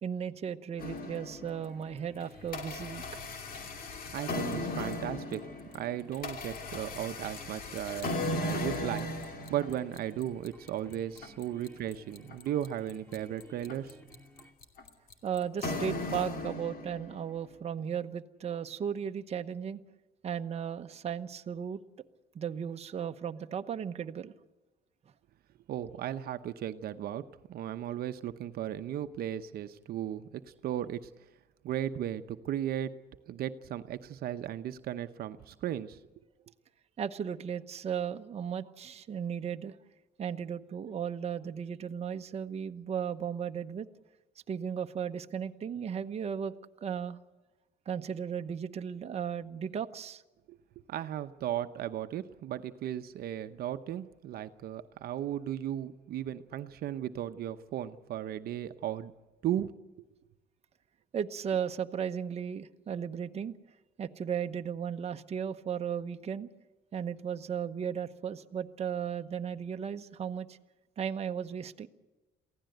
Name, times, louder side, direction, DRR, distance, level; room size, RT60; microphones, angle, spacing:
voice 1, 0.0-3.0 15.2-19.8 20.2-21.8 22.3-24.3 37.0-39.8 40.2-43.9 44.5-46.5 46.8-47.2 47.9-50.2 61.1-63.5 64.0-66.5 66.9-70.6 71.0-71.9, right 8 dB, 40° right, 7 dB, 0.9 m, -35 dB
sound 1, 0.8-1.7 2.2-17.2, left 2 dB, 55° left, 2.7 m, -37 dB
sound 2, 1.3-14.5, equal, 10° left, 3.5 m, -57 dB
voice 2, 4.1-5.4 5.7-14.0 25.7-27.2 27.5-31.1 31.6-32.9 33.3-36.0 50.5-50.6 50.9-59.1 59.4-59.7 60.0-60.1, right 11 dB, 65° right, 10 dB, 0.9 m, -36 dB
23.0 x 16.0 x 7.9 m, 1.1 s
cardioid pair, 110°, 17 cm